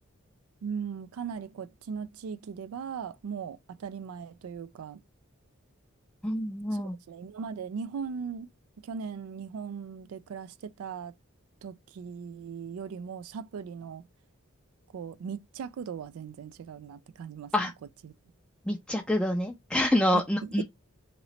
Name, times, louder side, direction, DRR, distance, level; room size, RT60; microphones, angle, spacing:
voice 1, 0.6-5.0 6.7-8.5 8.8-11.1 11.6-14.1 14.9-17.5 18.0-18.1 20.1-20.6, right 6 dB, 85° right, 0.3 m, -38 dB
voice 2, 6.2-7.0 17.5-17.7 18.7-20.6, left 1 dB, 5° left, 0.4 m, -27 dB
3.0 x 2.9 x 4.0 m
head